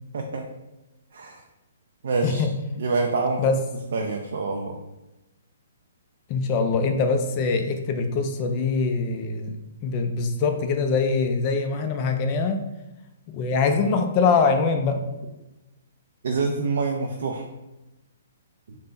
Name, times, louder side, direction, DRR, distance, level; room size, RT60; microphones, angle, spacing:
voice 1, 0.1-0.5 1.1-1.4 2.0-2.5 2.8-3.4 3.9-4.8 16.2-17.5 18.7-18.8, right 4 dB, 70° right, 2 dB, 0.4 m, -26 dB
voice 2, 2.2-2.6 3.4-3.6 6.3-12.6 13.3-15.0, left 4 dB, 35° left, 5 dB, 0.4 m, -23 dB
3.4 x 2.1 x 3.9 m, 0.99 s
hypercardioid pair, 140°, 0 cm